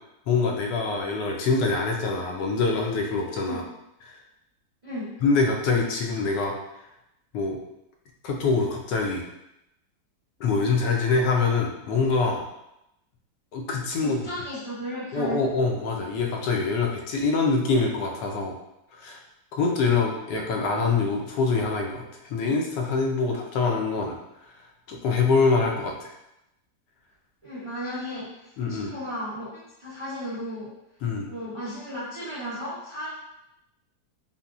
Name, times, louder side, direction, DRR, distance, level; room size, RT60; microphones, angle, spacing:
voice 1, 0.3-3.6 5.2-6.6 7.3-7.6 8.2-9.3 10.4-12.4 13.5-14.2 15.1-18.6 18.9-19.2 19.5-24.2 24.9-26.1 28.6-28.9 31.0-31.3, left 4 dB, 85° left, 1 dB, 1.2 m, -24 dB
voice 2, 14.0-15.4 27.4-30.7 31.3-33.1, equal, 40° right, -10 dB, 0.5 m, -35 dB
3.8 x 2.1 x 2.3 m, 0.86 s
omnidirectional pair, 1.8 m